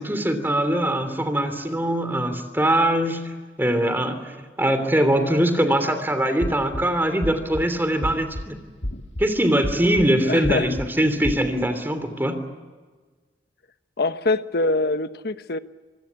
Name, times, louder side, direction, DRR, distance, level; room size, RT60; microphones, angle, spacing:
voice 1, 0.0-3.2 3.6-4.3 4.6-8.6 9.2-12.4, right 1 dB, 10° right, 3.0 m, -22 dB
sound 1, 6.4-6.8 7.2-7.6 8.0-8.4 8.8-9.2 9.6-10.1 10.4-10.9 11.2-11.4, left 1 dB, 75° left, 2.0 m, -29 dB
voice 2, 10.2-10.7 14.0-15.6, left 2 dB, 60° left, 1.1 m, -24 dB
26.0 x 23.0 x 8.6 m
head